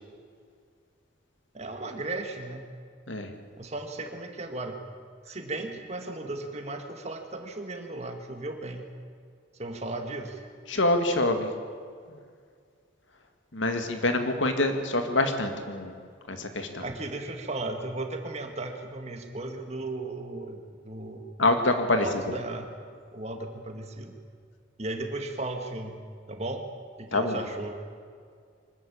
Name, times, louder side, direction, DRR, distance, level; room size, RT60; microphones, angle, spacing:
voice 1, 1.5-2.6 3.6-4.8 5.3-8.9 9.6-10.4 16.8-21.2 22.0-22.7 23.1-24.2 24.8-26.0 26.3-26.6 27.0-27.8, right 2 dB, 35° right, 5 dB, 2.0 m, -36 dB
voice 2, 10.7-11.5 13.5-15.9 16.3-16.8 21.4-22.1 27.1-27.4, left 2 dB, 80° left, 6 dB, 2.2 m, -25 dB
24.0 x 13.5 x 8.8 m, 2.1 s
head